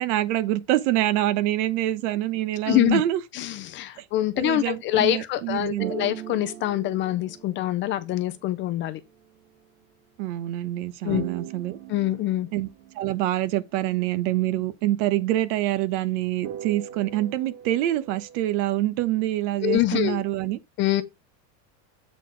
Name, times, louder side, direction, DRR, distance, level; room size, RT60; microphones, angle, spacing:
voice 1, 0.0-3.2 4.0-4.1 4.3-5.9 10.2-11.8 12.5-12.7 12.9-20.6, right 14 dB, 60° right, 1.0 m, -26 dB
voice 2, 2.7-3.0 3.3-9.0 11.0-11.2 11.9-12.5 19.6-20.2 20.8-21.0, left 14 dB, 30° left, 0.5 m, -25 dB
sound 1, 5.8-8.6 11.1-13.4 16.4-18.8, right 10 dB, 85° right, 2.0 m, -39 dB
8.3 x 4.1 x 4.5 m
supercardioid pair, 160°, 42 cm